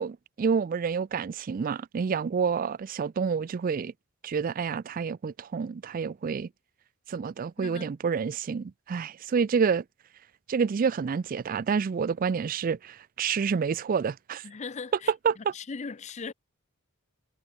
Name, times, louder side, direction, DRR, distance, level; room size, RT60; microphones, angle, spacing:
voice 1, 0.0-3.9 4.2-6.5 7.1-9.8 10.5-14.4 15.2-15.4, right 6 dB, 40° right, 0.3 m, -28 dB
voice 2, 7.6-7.9 14.4-16.3, left 4 dB, 30° left, 0.5 m, -39 dB
head